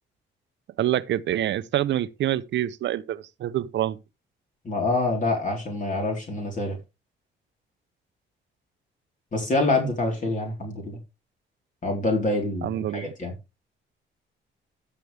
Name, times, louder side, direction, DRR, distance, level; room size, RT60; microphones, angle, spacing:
voice 1, 0.8-4.0 12.6-13.1, right 12 dB, 65° right, 0.7 m, -26 dB
voice 2, 4.6-6.8 9.3-11.0 11.8-13.3, left 2 dB, 40° left, 4.2 m, -26 dB
13.5 x 6.9 x 3.5 m
cardioid pair, 90°, 20 cm